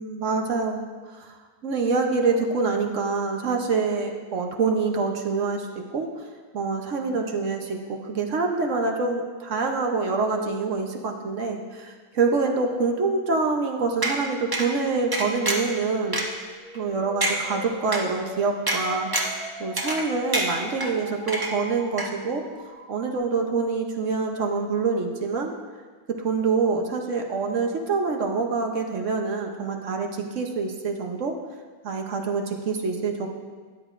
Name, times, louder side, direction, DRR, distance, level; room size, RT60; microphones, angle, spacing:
voice 1, 0.0-1.4 1.6-6.2 6.5-16.2 16.7-19.1 19.6-22.4 22.9-25.5 26.1-31.3 31.8-33.3, right 4 dB, 60° right, 3 dB, 1.1 m, -26 dB
sound 1, 14.0-14.1 14.5-14.7 15.1-15.7 16.1-16.2 16.7-16.8 17.2-17.4 17.9-18.0 18.7-18.8 19.1-19.4 19.8-20.1 20.3-20.9 21.3-21.7 22.0-22.1, right 1 dB, 20° right, 0.8 m, -25 dB
sound 2, 16.2-23.2, left 1 dB, 90° right, 3.3 m, -41 dB
13.5 x 9.9 x 2.5 m, 1.5 s
omnidirectional pair, 1.6 m